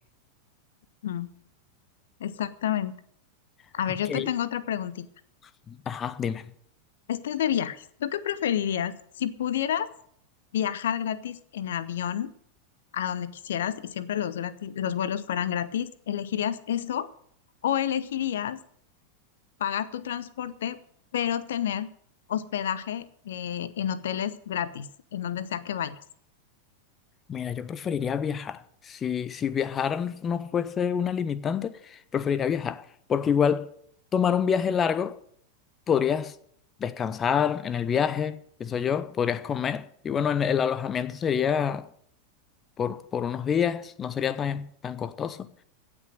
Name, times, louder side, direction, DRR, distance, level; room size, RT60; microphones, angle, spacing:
voice 1, 2.2-3.0 3.7-5.1 7.1-9.9 10.5-12.3 12.9-17.1 17.6-18.6 19.6-20.8 21.1-21.9 22.3-24.9 25.1-25.9, left 10 dB, 60° left, 0.8 m, -29 dB
voice 2, 5.7-6.4 27.3-32.8 33.1-33.7 34.1-35.2 35.9-36.3 36.8-41.9 42.8-45.4, left 7 dB, 25° left, 0.7 m, -27 dB
16.5 x 6.2 x 8.9 m
figure-of-eight pair, 90°, 0 cm